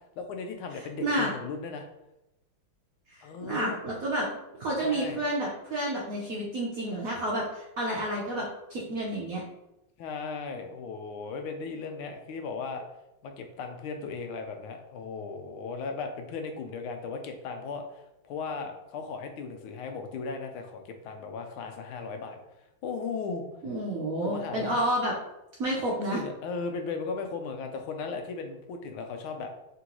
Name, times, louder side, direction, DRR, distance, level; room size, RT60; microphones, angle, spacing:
voice 1, 0.2-1.9 3.2-3.8 4.8-5.2 10.0-12.8 13.2-22.4 22.8-23.4 24.1-24.9 26.0-29.5, left 4 dB, 85° left, 5 dB, 1.4 m, -36 dB
voice 2, 1.0-1.3 3.1-4.3 4.6-9.4 23.6-25.1 25.6-26.2, right 1 dB, 70° right, -4 dB, 0.8 m, -30 dB
3.8 x 3.7 x 2.9 m, 0.92 s
omnidirectional pair, 2.3 m